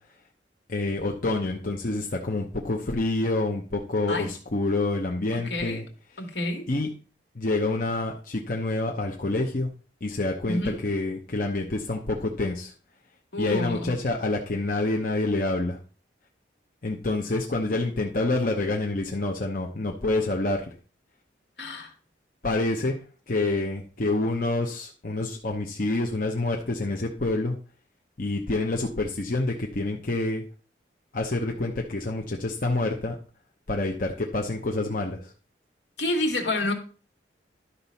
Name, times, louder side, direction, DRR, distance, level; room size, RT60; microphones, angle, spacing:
voice 1, 0.7-5.8 6.7-6.9 7.3-9.7 10.0-12.7 13.4-15.8 16.8-20.7 22.4-23.0 23.3-27.6 28.2-30.4 31.1-33.2 33.7-35.3, left 2 dB, 50° left, 1 dB, 0.9 m, -27 dB
voice 2, 5.3-5.8 6.2-6.7 10.5-10.8 13.3-13.9 21.6-21.9 36.0-36.7, left 1 dB, 75° left, 3 dB, 1.9 m, -29 dB
11.5 x 4.0 x 5.7 m, 0.40 s
head